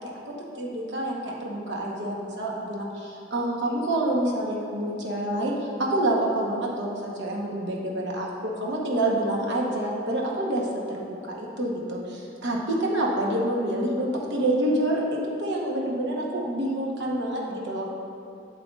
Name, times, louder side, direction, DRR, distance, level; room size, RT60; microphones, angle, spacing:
voice 1, 0.2-17.9, right 1 dB, 65° right, -2 dB, 1.0 m, -27 dB
7.7 x 7.6 x 2.4 m, 2.6 s
head